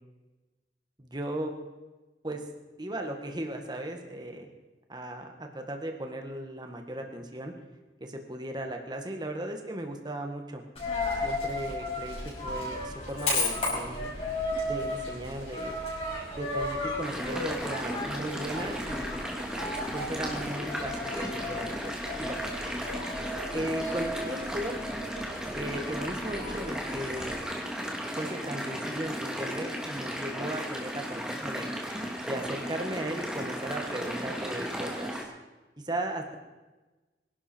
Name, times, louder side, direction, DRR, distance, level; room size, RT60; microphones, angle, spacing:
voice 1, 1.0-1.5 2.2-2.4 2.8-4.5 4.9-7.5 8.0-10.6 11.2-14.1 14.7-15.7 16.3-19.2 19.9-22.4 23.5-24.8 25.5-27.3 28.1-31.7 32.2-35.3 35.8-36.4, right 1 dB, 25° right, 4 dB, 1.7 m, -36 dB
Coin (dropping), 10.7-27.4, left 2 dB, 35° left, 6.0 m, -35 dB
sound 1, 17.0-35.2, equal, 5° right, 2.2 m, -35 dB
24.5 x 11.5 x 4.6 m, 1.2 s
head